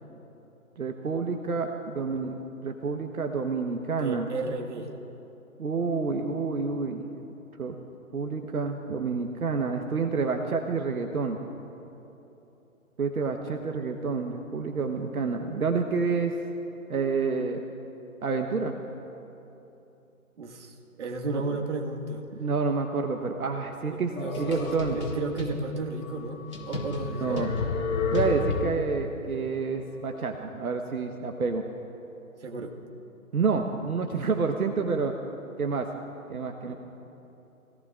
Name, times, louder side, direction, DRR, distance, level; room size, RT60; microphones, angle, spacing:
voice 1, 0.8-2.4 2.6-4.3 5.6-7.1 7.6-7.8 8.1-11.4 13.0-16.4 16.9-17.6 18.2-18.8 21.3-21.4 22.4-25.0 27.2-27.5 28.1-31.6 33.3-35.1 35.6-35.9 36.3-36.7, right 4 dB, 75° right, 4 dB, 1.2 m, -28 dB
voice 2, 4.0-4.9 20.4-22.2 23.9-27.5 32.4-32.8 36.6-36.7, right 3 dB, 50° right, 2 dB, 1.8 m, -33 dB
sound 1, 24.2-25.5 26.0-26.1 26.5-29.0, left 4 dB, 75° left, 3.5 m, -30 dB
26.5 x 17.5 x 2.5 m, 3.0 s
figure-of-eight pair, 155°, 43 cm